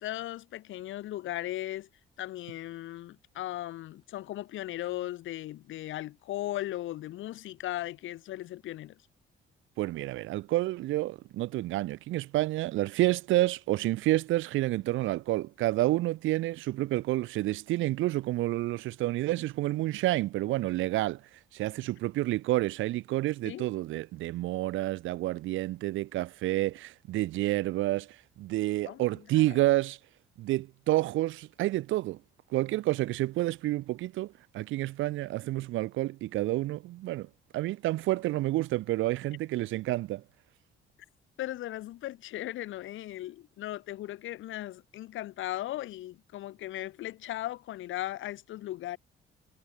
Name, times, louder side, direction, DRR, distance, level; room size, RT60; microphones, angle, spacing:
voice 1, 0.0-1.9 2.2-8.9 23.4-23.7 28.9-29.0 29.3-29.6 41.4-49.0, left 14 dB, 80° left, 1.3 m, -37 dB
voice 2, 9.8-21.2 21.5-30.0 30.4-32.2 32.5-37.3 37.5-40.2, right 16 dB, 80° right, 0.5 m, -29 dB
cardioid pair, 90°, 20 cm